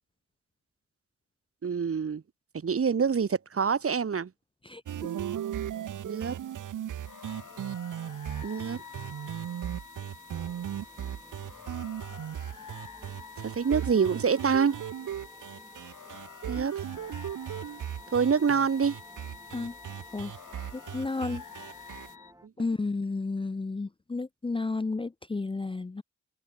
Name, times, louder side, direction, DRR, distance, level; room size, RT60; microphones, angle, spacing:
voice 1, 1.6-2.2 2.6-4.3 6.0-6.4 8.4-8.8 13.4-14.8 16.5-16.7 18.1-19.0, right 6 dB, 50° right, 0.9 m, -26 dB
voice 2, 4.6-5.1 19.5-19.7 20.1-20.3 20.7-21.4 22.6-26.0, left 3 dB, 20° left, 0.5 m, -32 dB
sound 1, 4.9-22.1, right 10 dB, 85° right, 0.7 m, -37 dB
sound 2, 7.0-22.3, left 8 dB, 85° left, 2.4 m, -49 dB
sound 3, 7.3-22.5, right 1 dB, 10° right, 6.6 m, -56 dB
cardioid pair, 45°, 30 cm